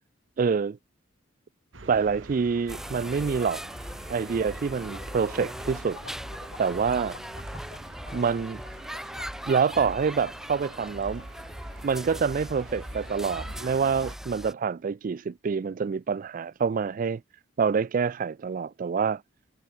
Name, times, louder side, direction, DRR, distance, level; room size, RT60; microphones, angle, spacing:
voice 1, 0.4-0.8 1.8-3.6 4.1-6.0 6.6-7.2 8.1-8.6 9.5-11.2 11.8-17.2 17.6-19.2, right 5 dB, 40° right, 0.3 m, -26 dB
sound 1, 1.7-14.2, right 2 dB, 75° right, 2.5 m, -47 dB
sound 2, 2.7-14.5, equal, ahead, 2.7 m, -39 dB
sound 3, 4.9-12.2, left 5 dB, 50° left, 1.2 m, -50 dB
head